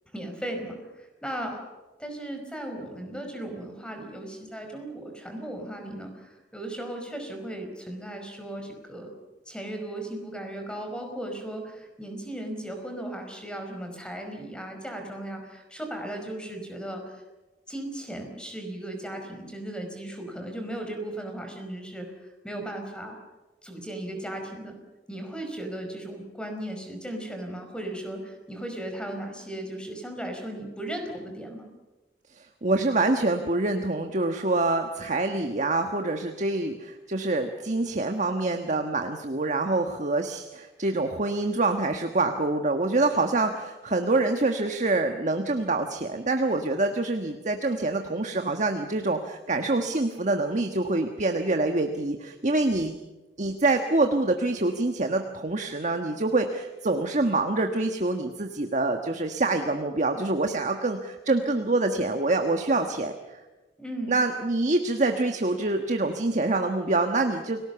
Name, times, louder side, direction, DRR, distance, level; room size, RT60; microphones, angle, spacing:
voice 1, 0.1-1.6 2.0-9.1 9.5-17.2 17.7-23.2 23.6-24.8 25.1-31.7 63.8-64.1, right 1 dB, 5° left, 4 dB, 4.9 m, -36 dB
voice 2, 32.3-53.0 53.4-63.4 64.1-67.6, right 2 dB, 45° right, 5 dB, 1.4 m, -26 dB
29.5 x 18.5 x 7.0 m, 1.1 s
head